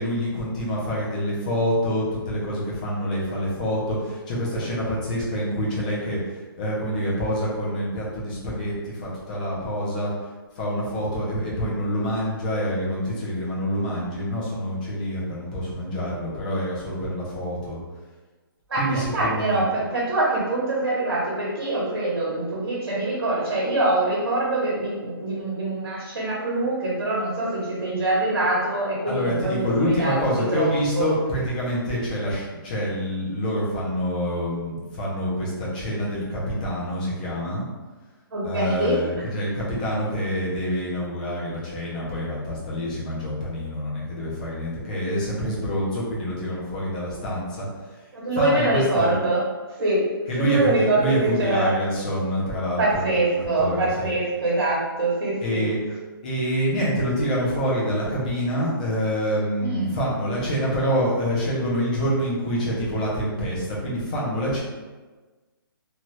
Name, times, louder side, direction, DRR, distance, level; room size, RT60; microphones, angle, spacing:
voice 1, 0.0-6.2 6.6-10.1 10.6-17.8 18.8-19.6 29.1-37.6 38.4-47.7 48.3-49.2 50.3-54.1 55.4-55.8 56.2-64.6, equal, 20° left, -6 dB, 0.6 m, -26 dB
voice 2, 18.7-31.1 38.3-39.0 48.1-49.4 49.8-50.1 50.3-51.7 52.8-55.7 59.6-59.9, right 2 dB, 70° right, -6 dB, 1.0 m, -24 dB
2.8 x 2.3 x 3.1 m, 1.3 s
hypercardioid pair, 175°, 13 cm